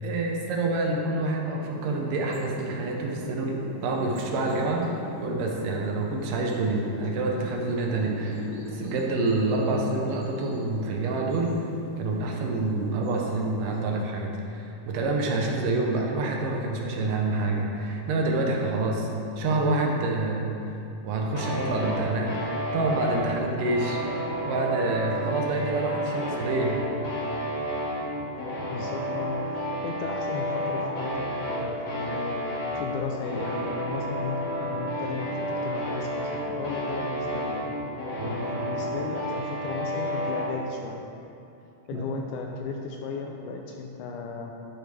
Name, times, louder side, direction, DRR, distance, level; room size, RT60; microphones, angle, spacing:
voice 1, 0.0-4.9 5.2-8.5 8.7-11.6 12.0-19.1 19.4-20.5 21.0-24.0 24.4-26.8 38.2-38.3 41.9-42.1, right 2 dB, 75° right, 0 dB, 2.4 m, -27 dB
sound 1, 1.7-13.8, right 1 dB, 55° right, 2.3 m, -41 dB
sound 2, 21.4-40.5, equal, 40° left, 2.2 m, -31 dB
voice 2, 28.7-37.6 38.2-41.0 41.9-44.5, left 4 dB, 80° left, 1 dB, 1.9 m, -35 dB
12.0 x 6.5 x 3.4 m, 2.7 s
omnidirectional pair, 4.0 m